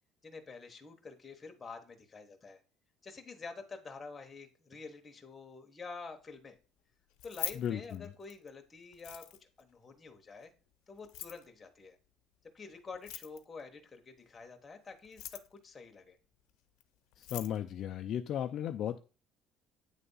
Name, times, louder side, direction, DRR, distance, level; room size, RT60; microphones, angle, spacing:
voice 1, 0.2-2.6 3.0-6.6 7.2-9.2 9.6-10.5 10.9-12.0 12.5-16.2, left 4 dB, 15° left, 4 dB, 1.0 m, -48 dB
Keys jangling, 7.1-8.5 8.9-9.6 11.0-11.5 12.9-13.6 15.0-15.6 16.8-16.9 17.1-17.6, left 15 dB, 75° left, 0.7 m, -43 dB
voice 2, 7.5-8.1 17.2-19.0, left 10 dB, 40° left, 6 dB, 0.4 m, -35 dB
8.8 x 3.4 x 5.4 m, 0.35 s
cardioid pair, 180°, 0 cm